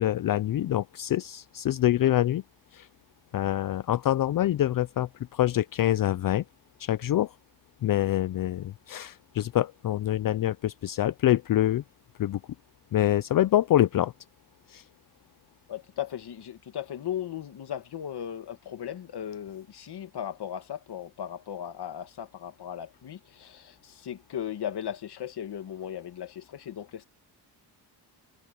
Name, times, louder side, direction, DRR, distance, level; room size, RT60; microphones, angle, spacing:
voice 1, 0.0-2.4 2.7-2.9 3.3-6.4 6.8-7.3 7.8-11.8 12.2-12.4 12.9-14.1 14.7-14.8, left 13 dB, 55° left, 0.5 m, -25 dB
voice 2, 15.7-27.1, left 10 dB, 70° left, 2.1 m, -37 dB
cardioid pair, 110°, 41 cm